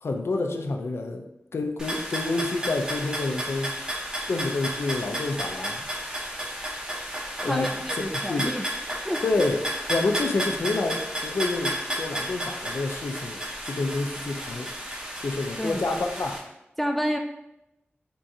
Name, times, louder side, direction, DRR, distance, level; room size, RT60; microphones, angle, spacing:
voice 1, 0.0-1.2 1.5-3.8 4.3-5.8 7.4-7.7 8.3-8.6 9.2-14.7 15.2-16.4, left 3 dB, 90° left, 5 dB, 0.4 m, -28 dB
sound 1, 1.8-16.4, equal, 20° right, 0.9 m, -32 dB
voice 2, 7.5-8.7 9.0-9.2 15.6-15.8 16.8-17.2, equal, 5° left, 3 dB, 0.3 m, -29 dB
4.5 x 3.7 x 2.7 m, 0.90 s
wide cardioid pair, 75°, 4 cm